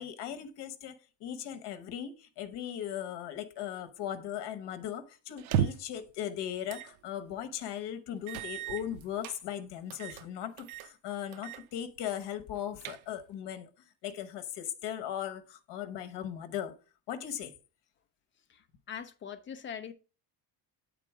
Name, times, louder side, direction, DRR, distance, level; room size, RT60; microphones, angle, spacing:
voice 1, 0.0-13.7 14.0-16.7 17.1-17.5, left 10 dB, 60° left, 1.0 m, -38 dB
sound 1, 5.4-6.0 6.7-6.9 7.3-7.4 8.3-9.4 9.9-10.3 10.6-10.9 11.3-11.6 12.0-12.1 12.5-13.3, right 9 dB, 90° right, 0.6 m, -34 dB
voice 2, 18.9-19.9, left 8 dB, 30° left, 0.4 m, -41 dB
8.3 x 3.8 x 4.7 m
cardioid pair, 175°, 46 cm